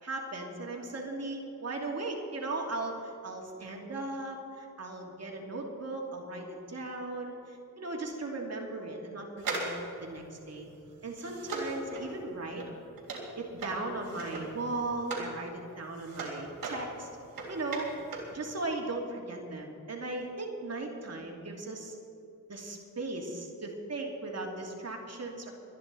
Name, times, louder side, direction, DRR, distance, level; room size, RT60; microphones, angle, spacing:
voice 1, 0.0-10.7 11.0-12.6 13.4-17.1 17.5-17.9 18.3-21.9 22.5-25.5, right 2 dB, 50° right, 0 dB, 2.7 m, -37 dB
sound 1, 9.4-15.4 15.7-18.4 18.6-18.7, right 3 dB, 90° right, 3.3 m, -39 dB
24.0 x 10.5 x 4.2 m, 2.6 s
cardioid pair, 75°, 33 cm